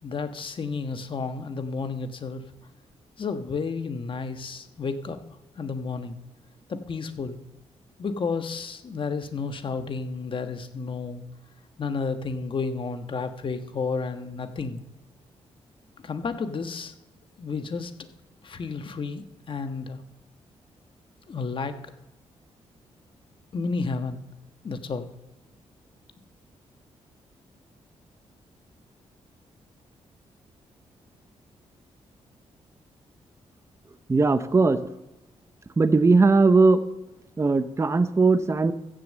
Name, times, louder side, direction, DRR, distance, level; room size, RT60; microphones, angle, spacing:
voice 1, 0.0-2.4 3.2-5.2 5.6-6.2 6.7-7.4 8.0-11.2 11.8-14.8 16.0-16.9 17.4-17.9 18.4-20.0 21.3-21.8 23.5-24.2 24.6-25.1, left 4 dB, 45° left, 8 dB, 1.3 m, -31 dB
voice 2, 34.1-34.8 35.8-36.8 37.4-38.7, right 3 dB, 25° right, 12 dB, 0.8 m, -19 dB
15.0 x 6.5 x 7.4 m, 0.99 s
cardioid pair, 90°, 12 cm